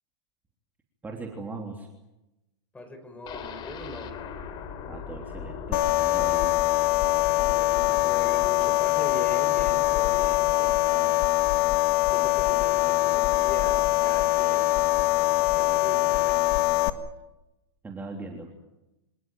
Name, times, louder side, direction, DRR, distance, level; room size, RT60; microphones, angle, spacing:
voice 1, 1.0-1.9 4.9-6.5 17.8-18.5, right 3 dB, 10° right, 1 dB, 3.2 m, -39 dB
voice 2, 2.7-4.2 7.1-11.3 12.1-14.7 15.2-16.6, left 2 dB, 10° left, 7 dB, 5.6 m, -40 dB
sound 1, 3.3-11.1 11.5-11.6 11.9-12.0, left 7 dB, 35° left, 3.4 m, -42 dB
sound 2, 5.7-16.9, left 17 dB, 50° left, 1.8 m, -23 dB
27.0 x 18.5 x 9.3 m, 0.97 s
hypercardioid pair, 125°, 14 cm